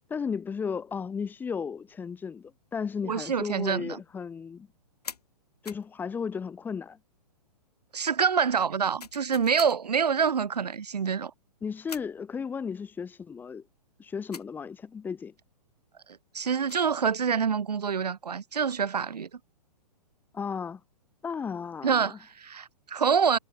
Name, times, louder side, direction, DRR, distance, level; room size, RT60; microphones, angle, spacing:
voice 1, 0.1-4.7 5.6-7.0 11.6-13.6 14.0-15.3 20.3-20.8 21.2-22.2, left 6 dB, 10° left, 1.0 m, -34 dB
voice 2, 3.0-4.0 7.9-11.3 16.3-19.3 21.8-23.4, right 6 dB, 75° right, 0.5 m, -26 dB
sound 1, 5.0-5.3 5.7-5.9 9.0-9.8 11.9-12.2 14.3-14.5 16.4-16.9, left 5 dB, 70° left, 2.6 m, -43 dB
figure-of-eight pair, 115°, 21 cm